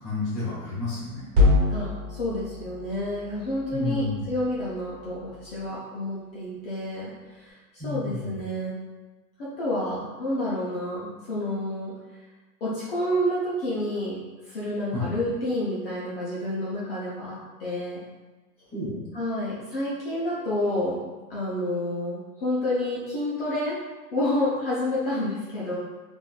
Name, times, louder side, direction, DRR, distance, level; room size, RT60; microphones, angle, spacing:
voice 1, 0.0-1.2 3.7-4.3 7.8-8.4 14.9-15.1 18.7-19.0, left 2 dB, ahead, -16 dB, 0.7 m, -31 dB
sound 1, 1.3-5.7, left 3 dB, 35° right, 1.4 m, -27 dB
voice 2, 1.7-8.8 9.4-11.9 12.6-14.2 14.4-18.0 19.1-21.0 21.3-23.8 24.1-25.8, left 1 dB, 40° left, -7 dB, 0.6 m, -29 dB
3.6 x 2.6 x 2.3 m, 1.2 s
supercardioid pair, 180°, 46 cm